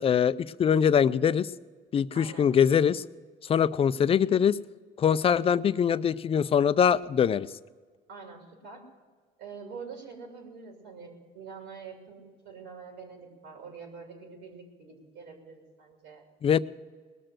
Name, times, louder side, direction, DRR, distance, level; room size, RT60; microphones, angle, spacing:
voice 1, 0.0-1.5 1.9-3.0 3.5-4.6 5.0-7.5 16.4-16.6, left 8 dB, 35° left, 16 dB, 0.4 m, -23 dB
voice 2, 2.1-2.5 8.1-8.8 9.4-16.2, right 5 dB, 90° right, 1 dB, 2.9 m, -45 dB
20.0 x 6.7 x 7.7 m, 1.5 s
cardioid pair, 110°, 17 cm